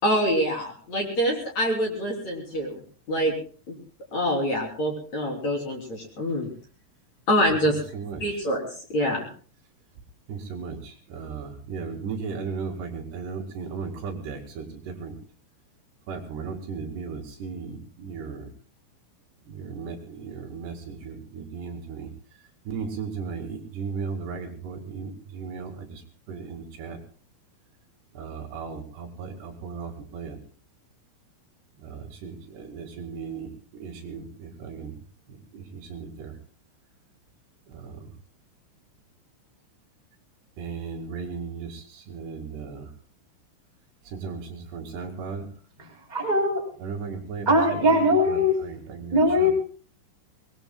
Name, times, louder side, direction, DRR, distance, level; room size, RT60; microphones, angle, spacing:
voice 1, 0.0-2.8 3.1-3.3 3.7-3.8 4.1-6.5 7.3-7.8 8.2-8.6 8.9-9.3, equal, 35° left, 0 dB, 3.8 m, -25 dB
voice 2, 7.7-8.4 10.3-15.2 16.1-18.5 19.5-22.1 22.7-26.0 26.3-27.0 28.2-30.4 31.8-34.9 35.3-36.3 37.7-38.0 40.6-42.9 44.1-45.5 46.8-49.5, right 5 dB, 60° right, 2 dB, 3.9 m, -36 dB
voice 3, 45.8-46.6 47.4-48.6 49.1-49.5, left 1 dB, 10° right, -2 dB, 2.4 m, -21 dB
24.5 x 20.0 x 2.3 m, 0.42 s
omnidirectional pair, 5.9 m